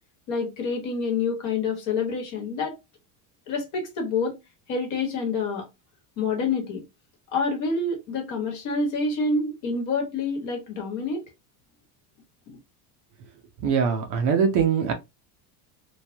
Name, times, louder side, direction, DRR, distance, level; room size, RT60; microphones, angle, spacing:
voice 1, 0.3-2.8 3.5-4.4 4.7-5.7 6.2-6.8 7.3-11.3 12.5-12.6, left 4 dB, 40° left, 1.1 m, -27 dB
voice 2, 13.6-14.9, right 6 dB, 45° right, 0.6 m, -22 dB
3.1 x 2.2 x 2.6 m
cardioid pair, 180°, 45 cm